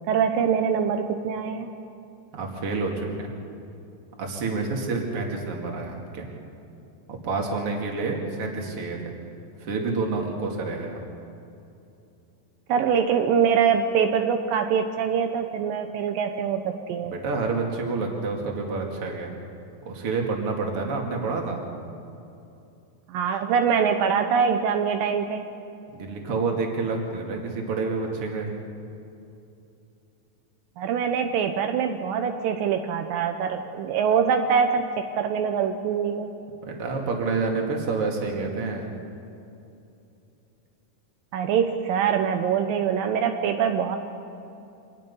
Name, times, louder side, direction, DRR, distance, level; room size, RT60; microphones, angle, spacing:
voice 1, 0.1-1.7 12.7-17.2 23.1-25.5 30.8-36.3 41.3-44.0, right 7 dB, 80° right, 6 dB, 2.6 m, -24 dB
voice 2, 2.3-3.4 4.2-6.3 7.1-9.1 9.6-11.0 17.1-19.3 19.8-21.6 25.9-28.6 36.6-38.9, right 4 dB, 45° right, 1 dB, 3.1 m, -28 dB
26.0 x 20.0 x 5.6 m, 2.7 s
omnidirectional pair, 4.0 m